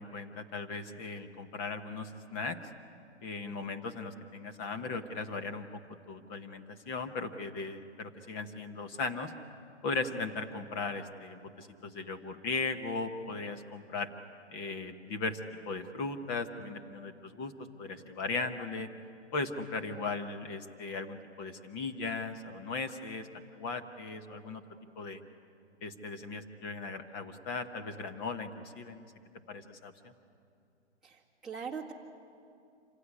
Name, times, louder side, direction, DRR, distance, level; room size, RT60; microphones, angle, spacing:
voice 1, 0.0-2.7 3.2-5.8 6.1-9.3 9.8-14.1 14.5-15.4 15.7-17.5 17.8-18.9 19.3-24.6 25.0-25.2 25.8-29.1 29.5-30.1, left 3 dB, 20° left, 8 dB, 0.9 m, -37 dB
voice 2, 31.0-31.9, right 6 dB, ahead, -7 dB, 1.8 m, -41 dB
26.0 x 16.0 x 9.9 m, 2.5 s
hypercardioid pair, 155°, 35 cm